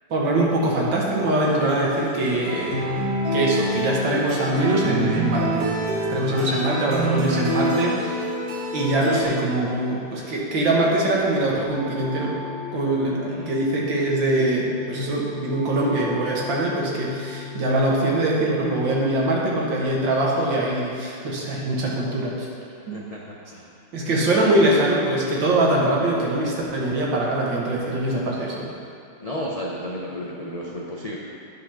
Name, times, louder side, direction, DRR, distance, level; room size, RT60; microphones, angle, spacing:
voice 1, 0.1-2.8 3.3-5.7 6.1-8.3 8.7-12.4 12.7-22.5 22.9-23.0 23.9-28.7, right 1 dB, 75° right, -4 dB, 2.2 m, -23 dB
sound 1, 1.2-9.2, right 1 dB, 55° right, 2.1 m, -27 dB
sound 2, 11.5-18.9, left 5 dB, 5° right, 2.3 m, -37 dB
voice 2, 22.9-23.7 24.3-24.9 29.2-31.2, left 1 dB, 55° left, -4 dB, 0.4 m, -33 dB
10.0 x 5.2 x 5.7 m, 2.5 s
omnidirectional pair, 2.0 m